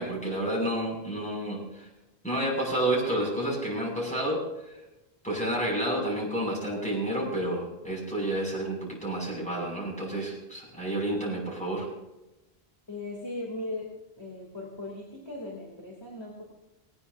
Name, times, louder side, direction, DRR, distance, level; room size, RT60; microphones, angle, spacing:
voice 1, 0.0-1.9 2.2-4.8 5.2-11.9, right 1 dB, 5° left, -3 dB, 6.6 m, -30 dB
voice 2, 12.9-13.9 14.2-16.4, left 2 dB, 25° left, -2 dB, 3.1 m, -38 dB
19.0 x 18.5 x 2.7 m, 0.96 s
omnidirectional pair, 1.0 m